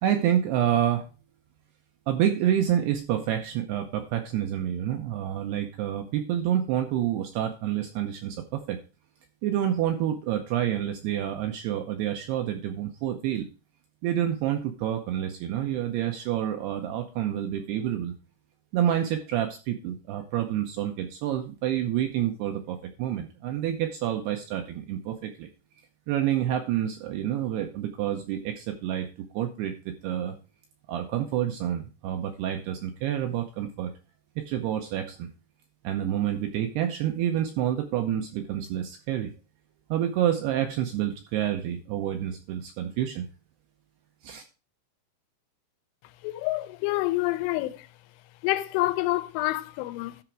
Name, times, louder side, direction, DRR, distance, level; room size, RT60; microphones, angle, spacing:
voice 1, 0.0-1.1 2.1-8.8 9.4-13.5 14.0-18.1 18.7-25.5 26.1-30.4 30.9-33.9 34.4-35.3 35.8-39.3 39.9-43.3 44.2-44.4, right 11 dB, 85° right, 2.4 m, -28 dB
voice 2, 46.2-47.9 48.4-50.2, left 18 dB, 85° left, 3.1 m, -27 dB
13.0 x 4.9 x 4.6 m
omnidirectional pair, 5.5 m